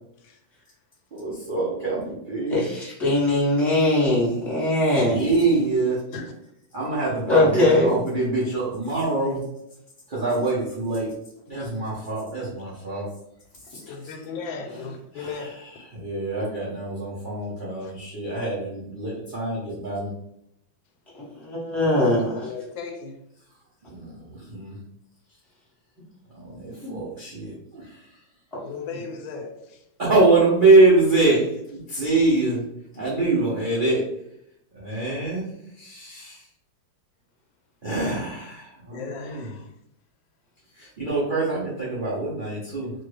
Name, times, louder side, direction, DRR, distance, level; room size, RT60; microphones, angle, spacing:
voice 1, 1.1-2.6 5.0-6.0 6.7-9.4 10.1-11.1 11.5-13.1 13.7-13.8 15.1-15.5 15.9-20.1 23.8-24.8 26.3-28.1 30.0-32.6 32.9-34.0 34.7-35.4 35.8-36.4 37.8-39.5 40.8-42.9, right 3 dB, 70° right, 0.4 m, -24 dB
voice 2, 2.5-5.2 7.3-7.9 21.4-22.5 26.8-26.9, left 1 dB, ahead, 0.8 m, -21 dB
voice 3, 4.9-5.8 6.1-6.3 13.8-15.5 17.8-17.9 22.3-23.2 28.6-29.8 38.9-39.8, left 5 dB, 90° left, 1.4 m, -37 dB
3.2 x 2.3 x 3.2 m
omnidirectional pair, 2.1 m